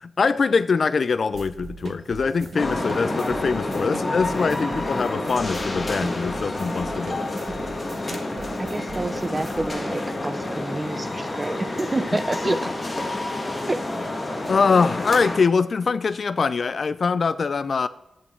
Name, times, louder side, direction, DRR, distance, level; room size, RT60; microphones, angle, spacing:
voice 1, 0.0-7.2 12.5-12.7 14.5-17.9, left 5 dB, 60° left, 0.4 m, -23 dB
sound 1, 1.3-9.7, right 4 dB, 70° right, 0.8 m, -40 dB
sound 2, 2.6-15.4, left 2 dB, 35° left, 1.7 m, -29 dB
voice 2, 8.6-12.7 13.7-13.8, right 2 dB, 25° right, 0.7 m, -28 dB
sound 3, 10.3-15.4, left 1 dB, 20° left, 1.6 m, -37 dB
11.0 x 8.8 x 4.5 m
wide cardioid pair, 105°, 0 cm